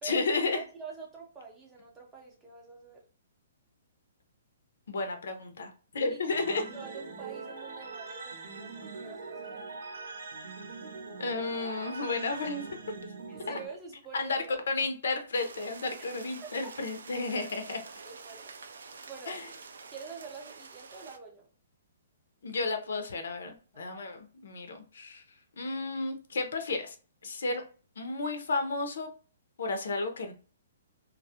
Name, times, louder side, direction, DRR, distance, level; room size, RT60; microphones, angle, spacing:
voice 1, 0.0-0.6 4.9-6.6 11.2-12.7 13.5-13.6 14.1-17.8 19.3-19.5 22.4-25.2 25.6-26.9 27.2-27.6 28.0-29.1 29.6-30.3, left 3 dB, 75° left, 6 dB, 0.5 m, -32 dB
voice 2, 0.5-3.0 6.1-6.2 6.7-9.6 13.3-14.6 16.0-16.1 16.4-16.7 17.5-18.5 19.1-19.4 19.9-21.5 23.7-23.9, right 5 dB, 10° right, -1 dB, 0.5 m, -46 dB
sound 1, 6.3-13.7, right 4 dB, 60° right, 0.7 m, -42 dB
sound 2, 15.3-21.2, right 4 dB, 85° right, 0.3 m, -47 dB
2.2 x 2.0 x 2.7 m, 0.38 s
hypercardioid pair, 165°, 0 cm